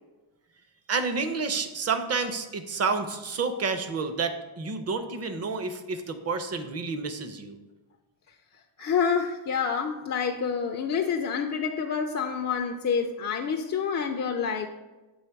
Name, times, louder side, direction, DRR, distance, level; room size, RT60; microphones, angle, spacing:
voice 1, 0.9-7.6, right 4 dB, 30° right, 0.6 m, -29 dB
voice 2, 8.8-14.7, left 6 dB, 35° left, 0.4 m, -28 dB
7.9 x 3.3 x 4.5 m
cardioid pair, 115°, 50 cm